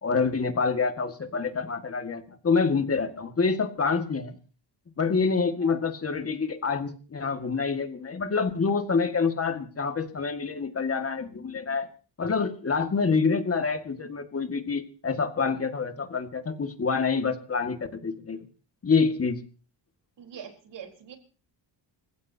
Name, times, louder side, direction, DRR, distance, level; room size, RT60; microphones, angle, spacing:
voice 1, 0.0-4.4 5.0-11.9 12.2-18.5 18.8-19.4, left 5 dB, 30° left, 7 dB, 1.9 m, -27 dB
voice 2, 20.2-21.2, right 8 dB, 65° right, 4 dB, 4.2 m, -43 dB
28.5 x 16.0 x 2.8 m, 0.38 s
cardioid pair, 125°, 45 cm